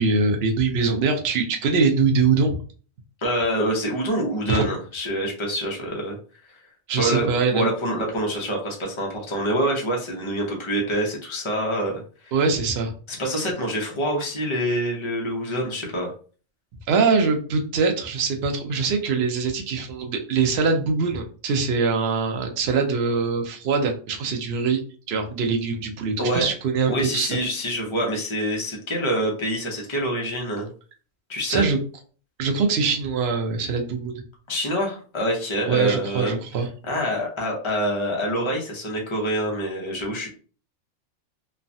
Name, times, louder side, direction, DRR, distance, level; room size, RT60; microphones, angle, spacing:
voice 1, 0.0-2.6 4.5-4.6 6.9-7.7 12.3-12.9 16.9-24.8 25.1-27.3 31.5-31.8 32.4-34.2 35.7-36.7, right 4 dB, 60° right, 4 dB, 0.7 m, -23 dB
voice 2, 3.2-6.2 6.9-12.3 13.1-16.1 26.2-26.5 26.9-30.7 31.3-31.7 34.5-36.3 36.9-40.3, equal, 30° left, 0 dB, 0.6 m, -26 dB
3.1 x 2.2 x 2.6 m, 0.40 s
omnidirectional pair, 1.4 m